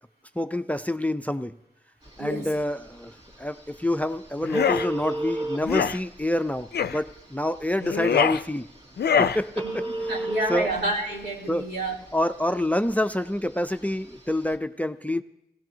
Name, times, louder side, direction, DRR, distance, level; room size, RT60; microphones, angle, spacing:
voice 1, 0.4-1.6 2.2-8.7 9.1-9.8 10.5-10.7 11.5-11.7 12.1-15.2, left 1 dB, 10° left, 11 dB, 0.5 m, -27 dB
Telephone, 2.0-14.6, right 2 dB, 35° right, 2.5 m, -37 dB
sound 1, 4.4-4.9 5.6-6.0 6.7-7.0 7.8-8.4 9.0-9.4, left 7 dB, 70° left, 0.4 m, -23 dB
voice 2, 9.6-12.0, right 1 dB, 75° right, -3 dB, 3.1 m, -29 dB
16.5 x 16.5 x 2.8 m, 0.86 s
cardioid pair, 45°, 17 cm